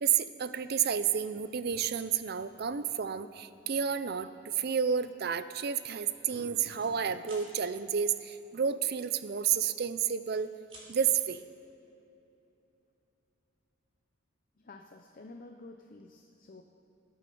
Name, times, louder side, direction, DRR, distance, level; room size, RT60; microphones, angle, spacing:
voice 1, 0.0-10.5 10.9-11.4, right 8 dB, 50° right, 13 dB, 0.5 m, -30 dB
sound 1, 4.9-5.1 5.6-5.8 6.0-6.9 7.2-7.5 9.0-9.8 10.2-10.9, right 2 dB, 30° right, 3.3 m, -54 dB
voice 2, 14.6-16.6, left 2 dB, 45° left, 4 dB, 0.7 m, -50 dB
19.5 x 8.4 x 5.4 m, 2.9 s
head